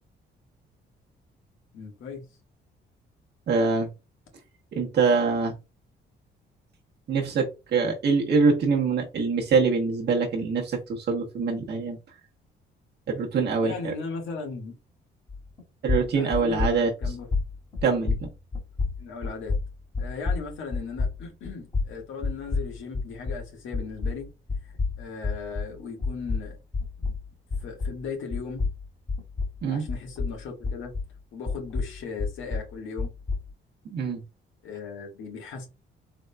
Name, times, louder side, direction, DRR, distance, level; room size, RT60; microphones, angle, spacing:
voice 1, 1.7-2.3 13.6-14.8 16.1-17.3 17.8-17.9 19.0-19.6 20.0-24.3 24.6-24.7 25.0-26.6 27.0-27.1 27.6-28.6 29.7-30.9 31.3-33.1 34.6-35.7, left 5 dB, 80° left, 1 dB, 1.5 m, -37 dB
voice 2, 3.5-3.9 4.7-5.5 7.1-12.0 13.1-13.9 15.8-16.9 17.8-18.3 29.6-29.8 33.8-34.2, right 4 dB, 55° right, -1 dB, 1.0 m, -24 dB
sound 1, 15.3-15.6 15.9-23.5 23.7-28.1 28.3-31.2 31.5-33.5, left 4 dB, 30° left, 2.0 m, -30 dB
3.8 x 3.4 x 2.2 m, 0.28 s
cardioid pair, 90°, 20 cm